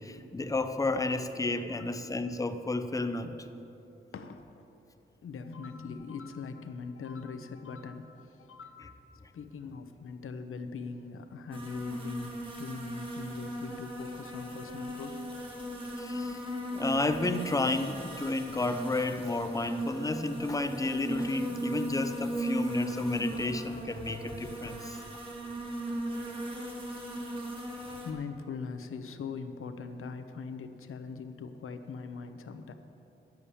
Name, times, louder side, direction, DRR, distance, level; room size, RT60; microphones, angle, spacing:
voice 1, 0.0-3.5 16.0-16.4 16.7-25.0, left 2 dB, 15° left, 0.5 m, -32 dB
voice 2, 4.1-4.6 5.2-15.2 27.8-32.7, left 5 dB, 85° left, 0.8 m, -41 dB
sound 1, 11.5-28.1, right 1 dB, 25° right, 1.8 m, -37 dB
10.5 x 7.3 x 8.4 m
wide cardioid pair, 155°, 21 cm